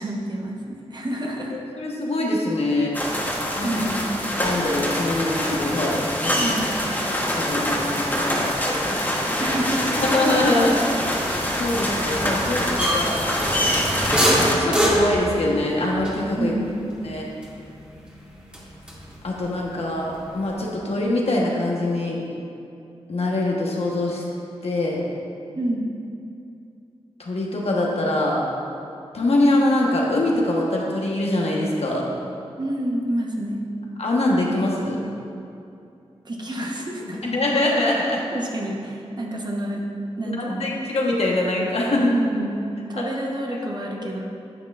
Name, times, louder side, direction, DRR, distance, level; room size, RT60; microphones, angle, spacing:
voice 1, 0.0-1.5 3.6-4.0 6.4-6.8 9.4-10.0 16.4-16.8 25.5-25.9 32.6-33.6 36.2-37.3 38.3-39.9 40.2-40.8 42.1-44.2, right 1 dB, 40° right, -1 dB, 1.0 m, -28 dB
voice 2, 1.8-2.9 3.5-3.7 4.4-6.4 7.1-8.8 10.0-10.8 11.1-13.2 14.6-16.5 17.0-17.3 19.2-22.2 23.1-24.2 24.6-25.0 27.2-28.5 29.1-32.1 34.0-35.0 36.6-36.7 37.1-38.2 40.3-42.2 43.0-43.1 43.5-43.6 44.0-44.2, left 1 dB, 65° left, -3 dB, 1.2 m, -23 dB
sound 1, 2.9-14.5, equal, 15° left, 1.1 m, -25 dB
sound 2, 11.2-19.3 19.6-20.7, equal, 10° right, 1.6 m, -26 dB
10.0 x 6.3 x 2.5 m, 2.6 s
cardioid pair, 60°, 11 cm